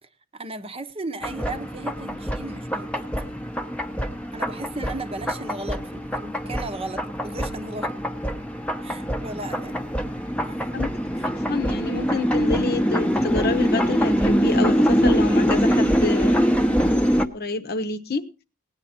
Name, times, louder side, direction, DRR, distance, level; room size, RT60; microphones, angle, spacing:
voice 1, 0.0-3.3 4.3-8.1 8.8-9.9 10.4-10.6 11.1-11.3, right 2 dB, 30° right, 0.8 m, -36 dB
sound 1, 1.2-17.3, equal, 5° left, 0.9 m, -24 dB
voice 2, 11.5-16.5 17.3-18.2, left 3 dB, 50° left, 1.0 m, -28 dB
18.0 x 9.7 x 4.3 m
head